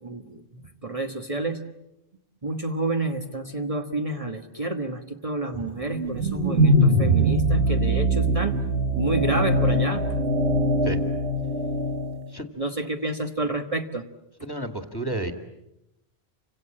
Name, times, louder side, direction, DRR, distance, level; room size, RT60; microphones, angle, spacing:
voice 1, 0.0-1.6 2.4-8.6 8.9-10.2 12.6-14.1, right 2 dB, 35° right, 5 dB, 1.5 m, -29 dB
sound 1, 5.9-12.2, right 1 dB, 85° right, 2.5 m, -22 dB
voice 2, 14.4-15.3, right 2 dB, 20° left, 6 dB, 2.2 m, -31 dB
30.0 x 26.0 x 7.6 m, 0.87 s
omnidirectional pair, 1.1 m